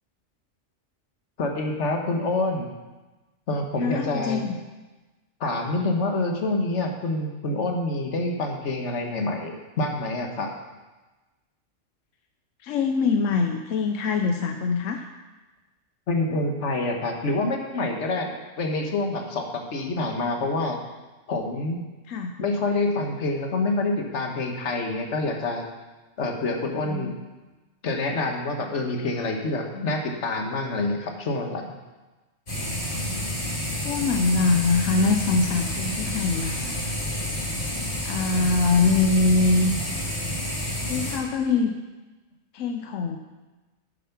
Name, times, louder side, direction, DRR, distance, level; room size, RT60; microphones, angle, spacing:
voice 1, 1.4-2.7 3.5-4.4 5.4-10.5 16.1-20.8 21.3-21.8 22.4-25.6 26.2-27.1 27.8-31.7, left 2 dB, 70° left, 3 dB, 1.6 m, -27 dB
voice 2, 3.8-4.6 12.6-15.1 22.1-22.3 26.9-27.1 33.8-37.0 38.0-39.7 40.9-41.7 42.5-43.2, left 4 dB, 90° left, 5 dB, 1.0 m, -23 dB
sound 1, 32.5-41.2, left 1 dB, 45° left, 2.5 m, -29 dB
9.3 x 7.2 x 5.9 m, 1.2 s
omnidirectional pair, 1.3 m